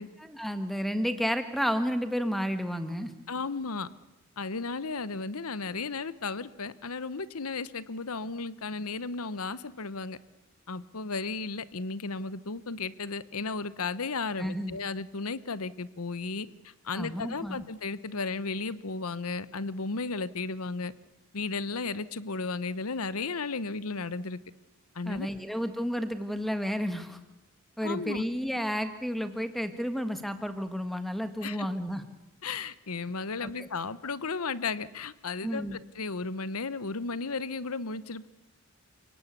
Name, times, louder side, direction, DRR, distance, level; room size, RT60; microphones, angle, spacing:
voice 1, 0.2-3.1 14.4-14.8 16.9-17.6 25.0-27.2 27.8-32.0 33.4-33.7 35.4-35.8, equal, ahead, 9 dB, 1.4 m, -31 dB
voice 2, 3.3-3.9 4.4-10.2 10.7-20.9 21.3-24.4 24.9-25.3 27.8-28.2 31.4-31.7 32.4-38.3, left 4 dB, 85° left, 16 dB, 1.0 m, -34 dB
29.0 x 18.0 x 8.3 m, 1.0 s
head